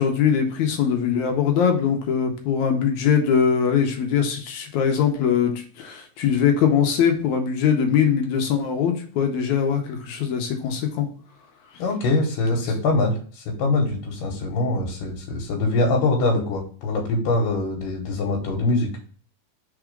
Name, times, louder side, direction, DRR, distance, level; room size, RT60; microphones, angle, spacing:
voice 1, 0.0-11.1, left 7 dB, 70° left, 4 dB, 2.1 m, -21 dB
voice 2, 11.8-18.9, left 2 dB, 85° left, 1 dB, 2.8 m, -23 dB
4.7 x 4.2 x 5.1 m, 0.43 s
omnidirectional pair, 3.8 m